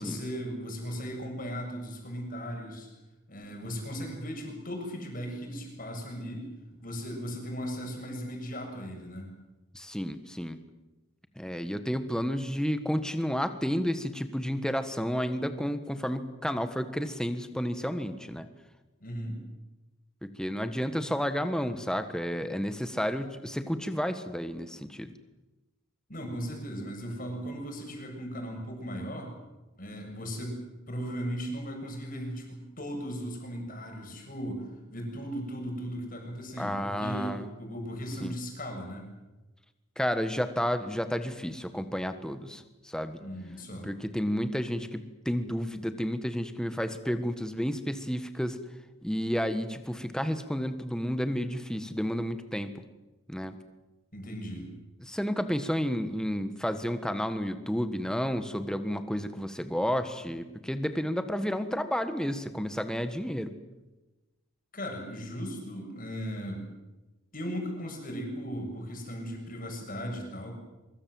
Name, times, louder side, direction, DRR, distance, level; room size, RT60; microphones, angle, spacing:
voice 1, 0.0-2.9 3.3-6.5 6.8-9.3 19.0-19.4 26.1-29.3 29.8-30.6 30.9-39.1 43.2-43.9 54.1-54.7 64.7-66.6 67.3-70.5, equal, 40° left, 2 dB, 7.0 m, -37 dB
voice 2, 9.7-10.6 11.4-18.5 20.2-25.1 36.6-37.5 38.2-38.3 40.0-43.2 43.8-48.6 49.0-52.8 53.3-53.5 55.0-63.5, equal, 5° left, 9 dB, 1.5 m, -31 dB
24.0 x 24.0 x 7.8 m, 1.1 s
head